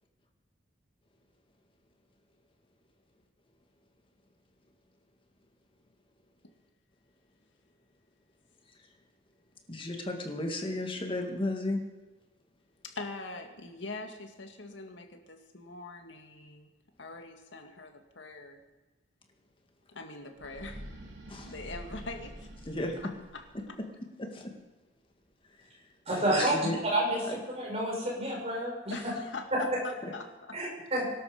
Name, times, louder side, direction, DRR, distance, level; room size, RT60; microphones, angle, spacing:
voice 1, 9.7-11.8 21.3-21.5 22.6-23.1 23.5-23.6 24.2-24.5 25.4-26.8 27.3-27.4, left 1 dB, 30° left, 3 dB, 2.1 m, -35 dB
voice 2, 12.8-16.7 17.0-18.6 19.9-20.9 21.5-22.5 23.3-23.4 28.9-29.0 29.3-29.4 30.1-30.6, left 3 dB, 80° left, 5 dB, 2.0 m, -43 dB
sound 1, 20.4-23.7, equal, 75° right, 3.2 m, -46 dB
voice 3, 26.1-26.6 26.9-29.1 29.5-29.8 30.5-31.1, right 1 dB, 35° right, -2 dB, 5.7 m, -30 dB
22.5 x 12.5 x 5.1 m, 1.1 s
head